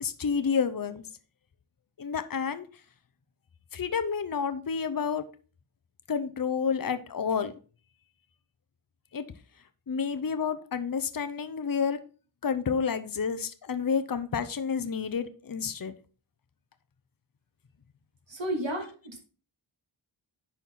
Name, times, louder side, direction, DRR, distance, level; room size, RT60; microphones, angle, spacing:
voice 1, 0.0-1.0 2.0-2.6 3.7-5.3 6.1-7.5 9.1-9.2 9.9-12.0 12.4-15.9, left 6 dB, 45° left, 0.7 m, -29 dB
voice 2, 18.3-19.2, right 1 dB, 65° right, 2.8 m, -32 dB
10.0 x 4.4 x 4.1 m
wide cardioid pair, 70°, 48 cm